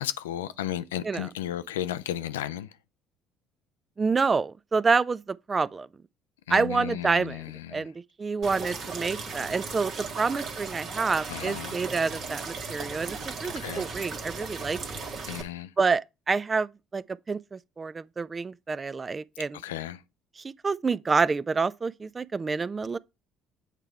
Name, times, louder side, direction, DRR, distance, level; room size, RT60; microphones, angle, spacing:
voice 1, 0.0-2.8 6.5-7.9 11.3-11.8 13.4-13.8 15.2-15.7 19.5-20.0, left 11 dB, 80° left, 0.4 m, -34 dB
voice 2, 4.0-5.9 6.5-7.4 7.7-7.9 8.2-15.0 15.8-19.6 20.6-23.0, right 4 dB, 30° right, 0.4 m, -28 dB
sound 1, 8.4-15.4, right 4 dB, 55° right, 1.4 m, -37 dB
8.2 x 3.6 x 4.5 m
hypercardioid pair, 55°, 0 cm